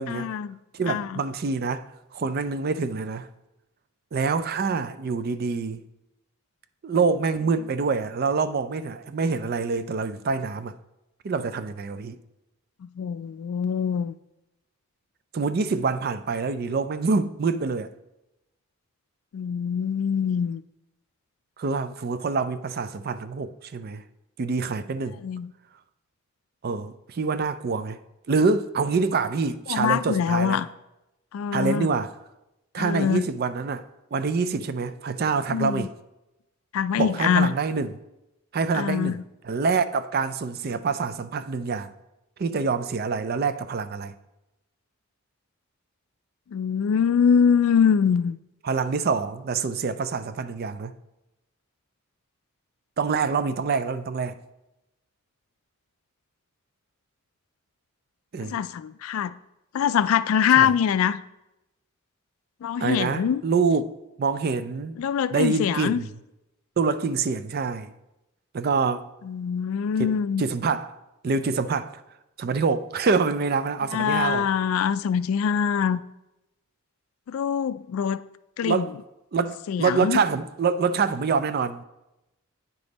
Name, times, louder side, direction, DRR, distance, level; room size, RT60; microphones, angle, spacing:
voice 1, 0.1-0.6 0.9-1.2 12.8-14.1 19.3-20.6 25.2-25.5 29.7-30.7 31.3-31.9 32.8-33.2 35.5-35.9 36.7-37.5 38.7-39.2 46.5-48.4 58.4-59.3 59.7-61.2 62.6-63.4 65.0-66.0 69.2-70.4 73.9-76.0 77.3-78.2 78.6-78.9 79.7-80.2, left 7 dB, 70° left, 0.3 m, -24 dB
voice 2, 0.7-3.3 4.1-5.8 6.8-10.7 11.2-12.2 15.3-17.9 21.6-24.0 24.4-25.2 26.6-28.0 28.3-30.6 31.5-32.1 32.7-33.8 34.1-35.9 37.0-37.9 38.5-39.2 39.4-41.9 42.4-44.1 48.6-50.9 53.0-54.4 58.3-58.6 60.6-60.7 62.8-63.8 64.2-65.0 65.3-66.1 66.8-67.9 68.5-69.1 70.0-71.0 71.2-72.0 72.4-74.5 78.6-78.9 79.3-81.8, right 4 dB, 45° right, 0.4 m, -26 dB
9.3 x 5.2 x 4.0 m
head